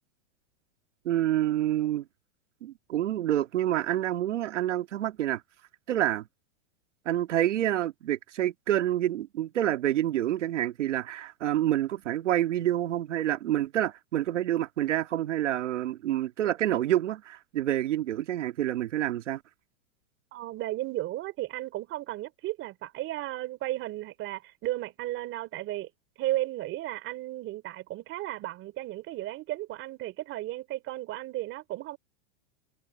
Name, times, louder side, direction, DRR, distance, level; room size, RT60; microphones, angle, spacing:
voice 1, 1.1-2.0 2.6-5.4 5.9-6.2 7.1-19.4, right 12 dB, 85° right, 2.1 m, -28 dB
voice 2, 20.3-25.9 26.2-32.0, right 16 dB, 35° right, 3.5 m, -34 dB
supercardioid pair, 135°, 35 cm